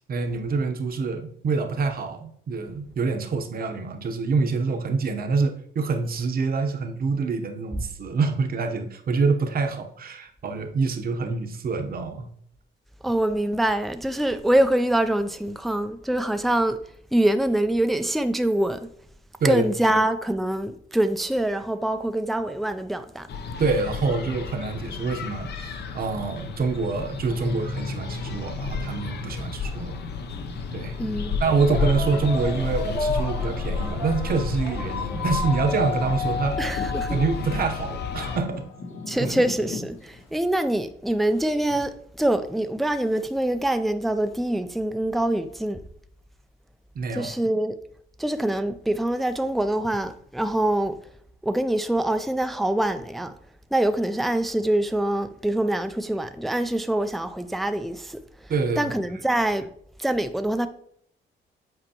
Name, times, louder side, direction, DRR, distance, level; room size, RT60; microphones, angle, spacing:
voice 1, 0.1-12.3 19.4-20.0 23.6-30.0 30.7-30.9 31.4-36.6 37.1-38.6 39.2-39.3 46.9-47.3 58.5-58.9, right 4 dB, 50° right, 0.9 m, -26 dB
voice 2, 13.0-16.8 17.1-18.8 19.4-23.3 31.0-31.4 36.6-37.2 39.1-45.8 47.1-47.7 48.2-51.0 51.4-53.3 53.7-59.7 60.0-60.7, right 1 dB, ahead, 0.4 m, -24 dB
sound 1, 23.3-38.4, left 4 dB, 55° left, 0.7 m, -31 dB
sound 2, 29.4-29.5 30.4-30.6 31.4-40.3, left 3 dB, 85° left, 1.4 m, -33 dB
7.7 x 4.4 x 2.9 m
cardioid pair, 90°, 20 cm